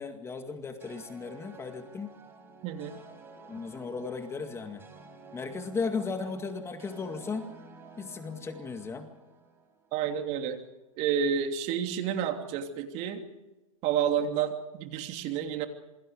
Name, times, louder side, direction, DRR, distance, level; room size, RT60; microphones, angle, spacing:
voice 1, 0.0-2.1 3.5-4.8 5.3-7.5 8.0-9.1, left 4 dB, 15° left, 6 dB, 2.0 m, -36 dB
sound 1, 0.8-10.1, right 3 dB, 15° right, 5.2 m, -51 dB
voice 2, 2.6-3.0 9.9-10.6 11.0-13.2 13.8-15.7, right 8 dB, 40° right, 5 dB, 3.0 m, -30 dB
27.5 x 23.0 x 5.0 m, 1.0 s
hypercardioid pair, 130°, 18 cm